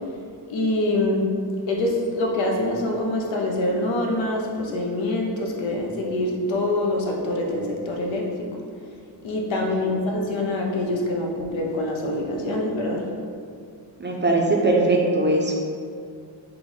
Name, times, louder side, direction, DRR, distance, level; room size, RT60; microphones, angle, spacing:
voice 1, 0.5-1.3 1.7-8.6 9.2-13.1, left 1 dB, 90° left, 0 dB, 0.7 m, -25 dB
voice 2, 14.0-15.5, right 2 dB, 25° right, -1 dB, 0.4 m, -20 dB
3.5 x 2.9 x 3.8 m, 2.3 s
wide cardioid pair, 120°, 44 cm